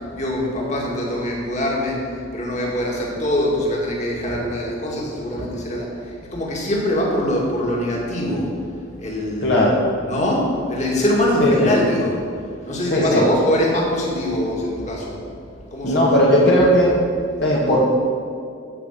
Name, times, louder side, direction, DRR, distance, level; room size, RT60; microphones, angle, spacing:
voice 1, 0.1-2.0 2.3-5.9 6.3-8.5 9.0-9.7 10.1-12.2 12.6-15.2 15.7-16.1, left 1 dB, 35° left, -2 dB, 2.2 m, -23 dB
voice 2, 9.4-9.8 11.4-11.7 12.9-13.2 15.8-16.9 17.4-17.8, equal, 55° left, -5 dB, 1.6 m, -16 dB
14.5 x 5.5 x 6.8 m, 2.3 s
head